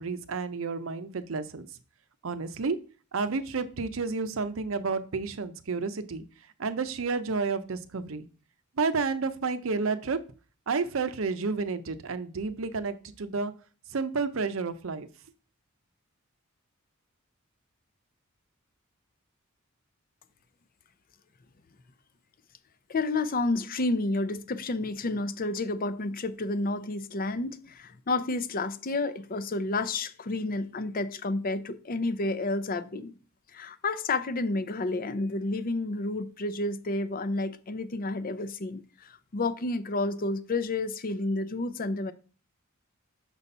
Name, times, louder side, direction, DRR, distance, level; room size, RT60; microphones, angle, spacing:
voice 1, 0.0-1.7 2.2-2.8 3.1-6.2 6.6-8.3 8.8-10.2 10.7-13.5 13.9-15.1, right 4 dB, 70° right, 0.6 m, -30 dB
voice 2, 22.9-33.1 33.5-42.1, left 2 dB, 45° left, 0.5 m, -30 dB
6.1 x 4.1 x 5.4 m
head